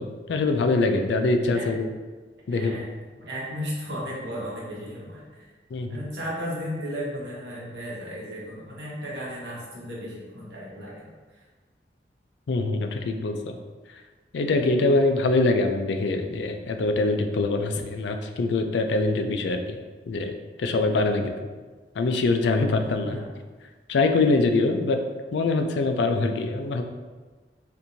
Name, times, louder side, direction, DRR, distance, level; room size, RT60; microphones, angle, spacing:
voice 1, 0.0-1.9 2.5-2.8 5.7-5.9 12.5-13.6 14.3-19.8 20.1-21.3 22.0-23.2 23.9-25.0 25.3-26.8, left 3 dB, 85° left, 6 dB, 0.4 m, -24 dB
voice 2, 2.5-5.5 5.9-11.4 23.0-23.3, equal, 80° right, -5 dB, 1.1 m, -35 dB
4.3 x 2.6 x 2.6 m, 1.4 s
head